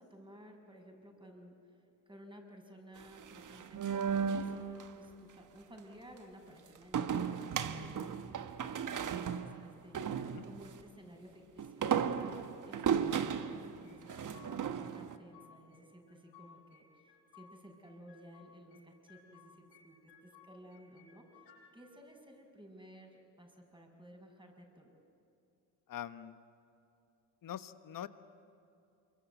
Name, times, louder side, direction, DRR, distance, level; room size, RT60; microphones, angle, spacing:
voice 1, 0.0-1.6 2.1-8.6 8.8-12.0 12.7-21.4 21.7-25.0, equal, 10° right, 3 dB, 6.5 m, -55 dB
sound 1, 3.0-4.9 6.9-10.8 11.6-15.2, right 7 dB, 40° right, 1.5 m, -35 dB
sound 2, 13.8-14.8 15.1-15.8 16.1-17.5 17.8-18.8 19.1-19.8 20.1-21.6, left 8 dB, 65° left, 7.9 m, -60 dB
voice 2, 25.9-26.4 27.4-28.1, left 10 dB, 45° left, 12 dB, 1.3 m, -43 dB
27.5 x 24.0 x 8.4 m, 2.7 s
hypercardioid pair, 60°, 47 cm